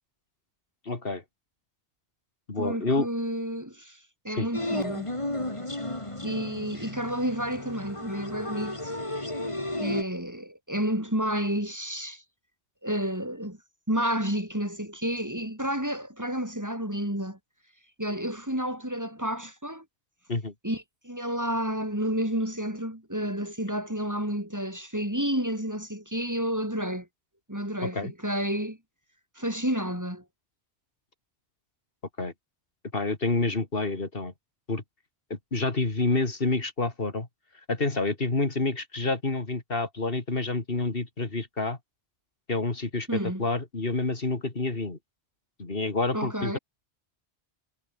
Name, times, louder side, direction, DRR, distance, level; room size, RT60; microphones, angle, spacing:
voice 1, 0.9-1.2 2.5-3.1 4.4-4.5 20.3-20.5 27.8-28.1 32.2-32.3 32.9-34.3 34.7-34.8 35.3-37.3 37.7-41.8 42.5-45.0 45.6-46.6, left 3 dB, 55° left, 3.0 m, -28 dB
voice 2, 2.6-4.0 4.2-5.1 6.2-8.9 9.8-12.2 12.8-13.6 13.9-17.4 18.0-19.8 20.6-27.1 27.5-28.8 29.4-30.2 43.1-43.4 46.1-46.6, equal, 15° right, 5.5 m, -30 dB
sound 1, 4.5-10.0, left 1 dB, 25° left, 3.6 m, -33 dB
omnidirectional pair, 1.1 m